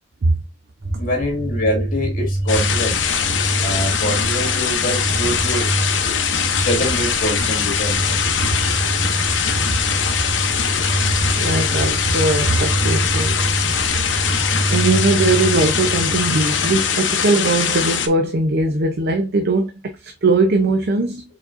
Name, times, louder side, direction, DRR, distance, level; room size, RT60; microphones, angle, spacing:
sound 1, 0.8-17.6, right 1 dB, 75° right, 2.7 m, -25 dB
voice 1, 1.0-3.0 3.3-5.7 6.4-8.0, equal, 50° left, 2.0 m, -25 dB
sound 2, 2.5-18.1, left 7 dB, 70° left, 0.7 m, -22 dB
voice 2, 11.4-13.4 14.7-21.2, right 2 dB, 60° right, 0.6 m, -20 dB
4.6 x 4.1 x 2.5 m
head